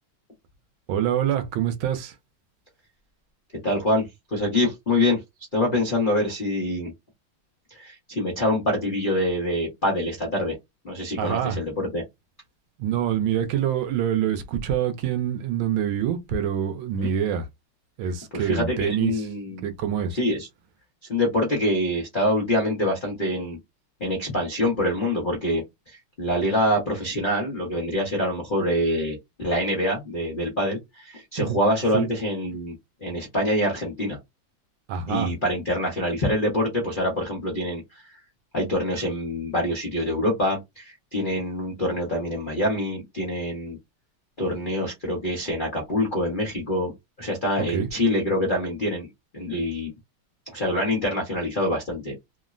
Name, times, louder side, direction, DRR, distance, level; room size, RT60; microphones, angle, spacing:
voice 1, 0.9-2.2 11.2-11.6 12.8-17.5 18.0-19.3 19.6-20.2 31.4-31.5 31.9-32.1 34.9-35.3 47.7-47.9, right 9 dB, 75° right, 1.3 m, -25 dB
voice 2, 3.6-5.2 5.5-6.9 7.7-10.5 10.8-12.0 17.0-17.1 18.3-19.6 20.1-20.5 21.1-23.6 24.0-32.7 33.0-34.2 35.1-38.1 38.5-43.8 44.4-46.9 47.2-49.1 49.3-49.9 50.5-52.1, left 1 dB, 70° left, 0.4 m, -25 dB
3.5 x 2.0 x 2.4 m
omnidirectional pair, 2.4 m